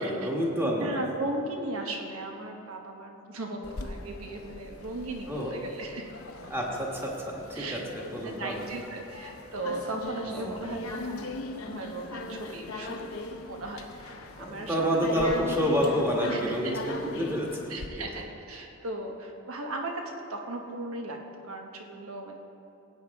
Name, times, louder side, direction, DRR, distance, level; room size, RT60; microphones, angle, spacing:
voice 1, 0.0-1.0 5.3-5.5 6.5-8.6 10.3-10.7 14.4-18.0, equal, 10° right, -2 dB, 1.4 m, -29 dB
voice 2, 0.6-6.1 7.5-7.8 8.2-13.1 13.4-14.8 16.3-16.8 17.7-22.4, right 2 dB, 80° right, 2 dB, 1.2 m, -37 dB
sound 1, 3.6-17.9, left 2 dB, 75° left, 0.8 m, -39 dB
16.0 x 8.8 x 3.6 m, 2.8 s
head